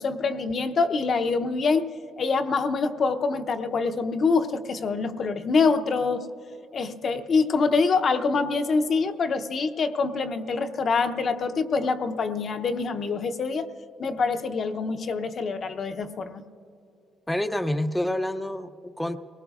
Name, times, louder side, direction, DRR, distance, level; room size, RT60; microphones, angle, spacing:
voice 1, 0.0-6.3 6.7-13.7 14.0-16.4, left 4 dB, 50° left, 7 dB, 0.6 m, -25 dB
voice 2, 17.3-19.2, left 1 dB, 10° left, 7 dB, 0.5 m, -28 dB
28.5 x 19.0 x 2.4 m, 2.7 s
cardioid pair, 90°, 0 cm